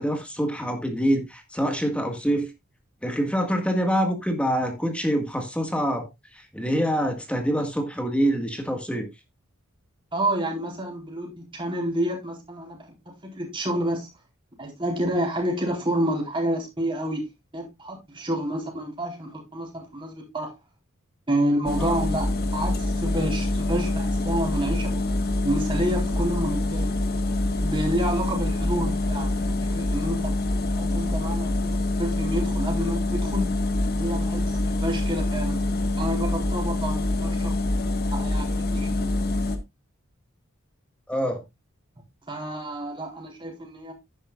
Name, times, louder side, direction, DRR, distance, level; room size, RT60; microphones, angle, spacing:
voice 1, 0.0-2.5 3.0-6.1 6.3-9.1 21.8-21.9 41.1-41.4, equal, 5° left, 1.7 m, -25 dB
voice 2, 10.1-14.1 14.6-17.2 17.5-20.5 21.3-25.1 25.4-26.9 27.6-30.3 30.8-33.6 34.0-35.6 36.0-37.6 38.1-39.1 42.3-43.9, right 1 dB, 25° right, 4.1 m, -29 dB
sound 1, 21.7-39.6, left 2 dB, 50° left, 1.6 m, -25 dB
10.5 x 10.5 x 2.4 m
head